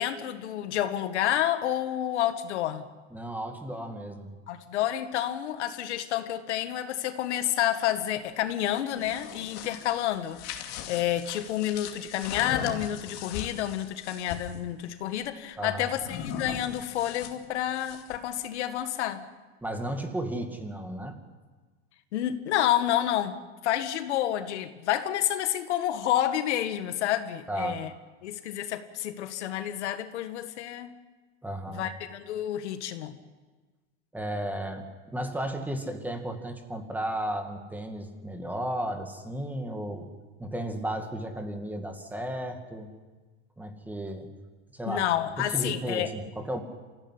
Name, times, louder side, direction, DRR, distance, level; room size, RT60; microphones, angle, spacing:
voice 1, 0.0-2.8 4.5-19.3 22.1-23.4 23.6-27.9 28.2-30.9 31.7-33.1 44.9-46.1, left 12 dB, 80° left, 9 dB, 2.0 m, -29 dB
voice 2, 3.1-4.3 15.6-15.9 19.6-21.2 27.5-27.8 31.4-31.8 34.1-40.1 40.4-42.9 43.6-44.3 44.7-45.1 45.4-46.6, right 1 dB, 5° right, 5 dB, 2.2 m, -34 dB
sound 1, 8.8-14.6 16.0-18.3, left 8 dB, 50° left, 2.5 m, -39 dB
26.0 x 16.0 x 9.9 m, 1.3 s
supercardioid pair, 145°, 34 cm